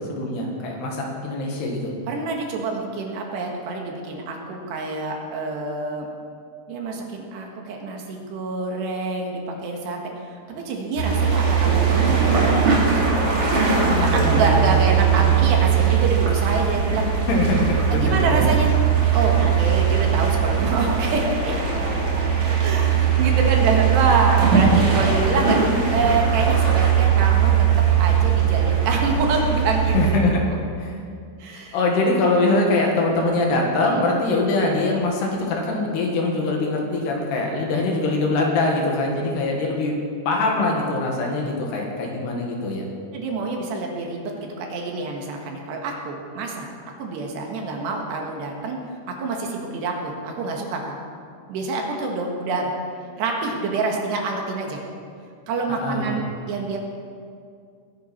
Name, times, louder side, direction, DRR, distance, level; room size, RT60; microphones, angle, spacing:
voice 1, 0.1-1.9 13.8-14.7 15.1-15.3 17.3-18.4 29.9-30.4 30.8-31.0 31.7-40.0 40.3-42.9 55.7-56.2, left 2 dB, 70° left, 0 dB, 3.8 m, -23 dB
voice 2, 2.1-6.1 6.7-12.6 13.8-17.1 17.9-18.7 19.1-21.5 22.6-27.5 28.0-30.0 31.4-31.8 43.1-46.7 47.0-48.8 49.1-51.0 51.5-52.7 53.2-54.8 55.5-56.8, right 3 dB, 70° right, 1 dB, 3.6 m, -26 dB
sound 1, 11.0-30.1, right 7 dB, 45° right, 3.3 m, -19 dB
21.5 x 11.0 x 4.4 m, 2.3 s
omnidirectional pair, 5.2 m